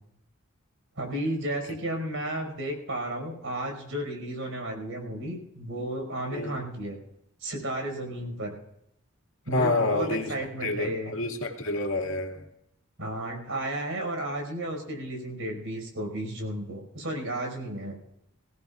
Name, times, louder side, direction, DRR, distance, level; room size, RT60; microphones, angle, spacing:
voice 1, 1.0-7.0 7.4-8.6 9.5-11.2 13.0-17.9, right 1 dB, 70° right, 2 dB, 5.4 m, -33 dB
voice 2, 9.5-10.3 10.6-12.5, left 2 dB, 65° left, 3 dB, 2.1 m, -28 dB
22.5 x 17.0 x 2.5 m, 0.78 s
head